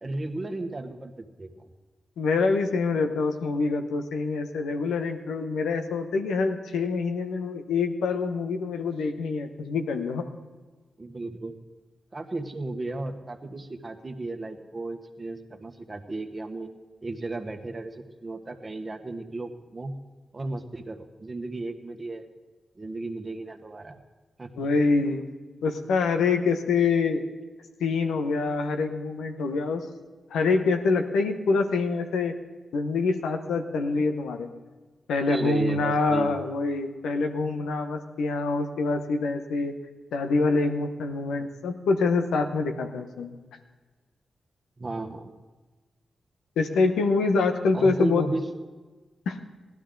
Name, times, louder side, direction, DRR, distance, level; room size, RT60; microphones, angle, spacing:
voice 1, 0.0-1.7 11.0-11.6 12.1-16.7 17.0-20.0 20.3-22.2 22.8-24.0 24.4-24.7 24.9-25.1 35.3-36.4 41.4-41.5 44.8-45.3 47.7-48.4, right 2 dB, 40° right, 4 dB, 1.4 m, -34 dB
voice 2, 2.2-10.3 24.6-25.2 25.6-27.2 27.8-29.8 30.3-32.3 32.7-34.5 35.1-39.7 40.1-43.4 46.6-48.3 49.3-49.4, left 4 dB, 90° left, 6 dB, 1.0 m, -25 dB
16.5 x 12.0 x 3.9 m, 1.3 s
supercardioid pair, 45°, 0 cm